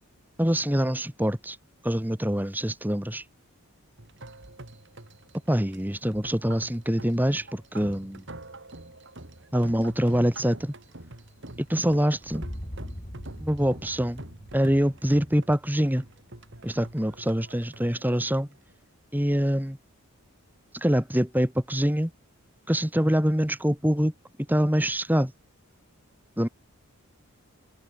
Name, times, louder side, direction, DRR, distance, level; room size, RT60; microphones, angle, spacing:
voice 1, 0.4-1.6 1.8-3.2 5.5-8.2 9.5-10.7 11.6-12.5 13.4-14.2 14.5-16.1 16.6-18.5 19.1-19.8 20.7-22.1 22.7-24.1 24.5-25.3 26.4-26.5, equal, 10° right, 1.8 m, -25 dB
sound 1, 4.0-18.8, right 2 dB, 55° right, 2.5 m, -46 dB
sound 2, 12.2-16.3, equal, 30° left, 6.2 m, -41 dB
head